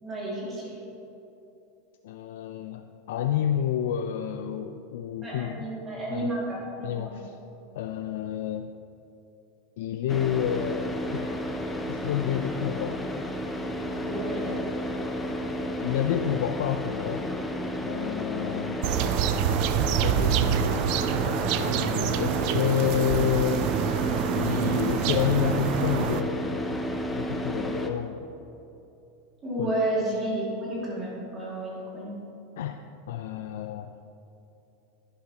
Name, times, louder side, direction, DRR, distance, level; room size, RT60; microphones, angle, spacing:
voice 1, 0.0-0.8 5.2-7.2 14.0-14.6 29.4-32.2, right 1 dB, 20° right, -5 dB, 2.3 m, -31 dB
voice 2, 2.0-5.7 6.1-6.3 6.8-7.4 7.7-8.7 9.8-11.3 11.9-13.1 15.8-17.3 17.8-18.8 19.9-20.9 21.5-23.7 24.3-28.2 29.6-29.8 32.6-32.8 33.1-33.9, left 10 dB, 70° left, 7 dB, 0.4 m, -29 dB
Car / Idling, 10.1-27.9, equal, 5° left, 0.6 m, -32 dB
sound 1, 18.8-26.2, right 9 dB, 45° right, 0.4 m, -26 dB
11.5 x 10.5 x 2.9 m, 2.9 s
supercardioid pair, 170°, 0 cm